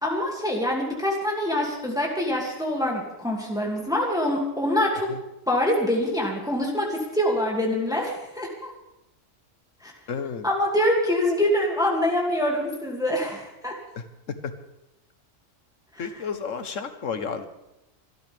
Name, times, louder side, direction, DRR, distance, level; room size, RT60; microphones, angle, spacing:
voice 1, 0.0-5.1 5.5-8.7 9.8-9.9 10.4-13.7 16.0-16.1, left 1 dB, 5° right, -2 dB, 2.4 m, -25 dB
voice 2, 10.1-10.5 13.9-14.5 16.0-17.5, left 6 dB, 80° left, 9 dB, 1.5 m, -32 dB
25.5 x 12.5 x 3.5 m, 0.90 s
omnidirectional pair, 1.3 m